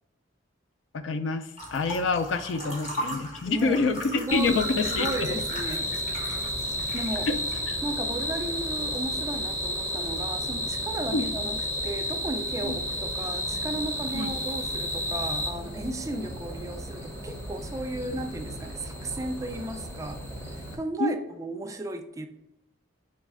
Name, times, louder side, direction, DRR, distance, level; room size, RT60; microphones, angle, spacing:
voice 1, 0.9-5.4 7.3-7.4 7.7-7.8 11.1-11.4 12.6-12.7 14.1-14.3 21.0-21.2, left 3 dB, 65° left, 0.4 m, -27 dB
sound 1, 1.6-7.6, equal, 40° left, 1.3 m, -38 dB
voice 2, 3.5-3.8 4.1-4.6 4.9-5.9 6.9-7.3 7.8-20.2 20.5-22.3, right 2 dB, 15° right, 0.3 m, -35 dB
sound 2, 4.3-20.8, equal, 15° left, 0.7 m, -32 dB
4.0 x 3.2 x 3.6 m
head